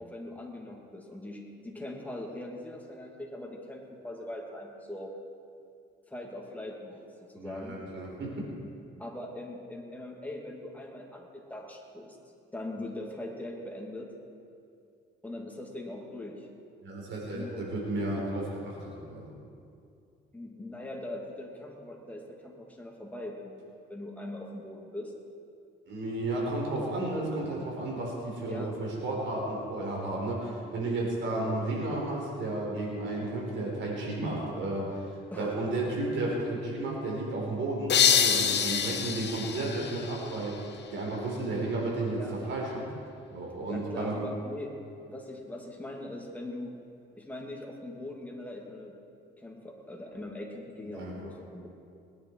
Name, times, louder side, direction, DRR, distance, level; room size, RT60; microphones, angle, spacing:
voice 1, 0.0-5.1 6.1-7.8 9.0-12.2 12.5-14.1 15.2-16.5 17.3-17.7 20.3-25.1 28.5-28.8 35.3-35.5 42.1-42.4 43.7-44.7 45.1-46.7 47.2-49.0 49.4-49.6 49.9-51.7, left 1 dB, 10° left, -1 dB, 2.6 m, -41 dB
voice 2, 7.4-8.4 16.8-19.3 25.9-35.1 35.4-42.9 43.3-44.2 50.8-51.1, right 2 dB, 70° right, -2 dB, 4.5 m, -33 dB
sound 1, 37.9-40.7, left 7 dB, 60° left, 1.1 m, -26 dB
19.5 x 10.5 x 4.8 m, 2.4 s
cardioid pair, 90°, 20 cm